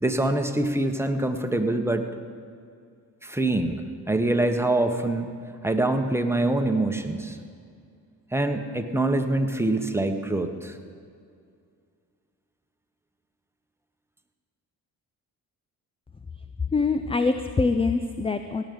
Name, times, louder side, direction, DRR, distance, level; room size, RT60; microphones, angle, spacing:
voice 1, 0.0-2.1 3.2-5.3 5.6-7.4 8.3-10.8, right 2 dB, 5° right, 6 dB, 1.2 m, -25 dB
voice 2, 16.7-18.6, left 4 dB, 15° left, 9 dB, 0.4 m, -24 dB
18.0 x 6.5 x 5.4 m, 2.3 s
hypercardioid pair, 45°, 47 cm